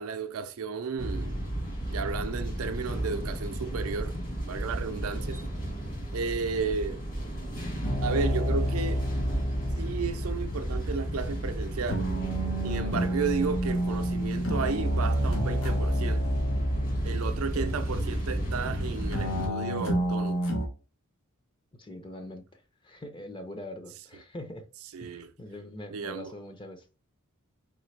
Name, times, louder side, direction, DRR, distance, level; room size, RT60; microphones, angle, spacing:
voice 1, 0.0-1.4 1.9-4.1 4.5-5.4 6.1-7.0 8.0-9.0 9.8-12.1 12.6-16.2 17.0-20.4 24.9-25.3 25.9-26.3, right 5 dB, 75° right, 0.5 m, -33 dB
sound 1, 1.0-19.5, right 1 dB, 40° left, 1.7 m, -34 dB
sound 2, 7.8-20.7, equal, 80° left, 1.0 m, -30 dB
voice 2, 21.8-24.6 25.0-26.9, left 1 dB, 25° left, 0.6 m, -43 dB
3.8 x 3.2 x 3.2 m
head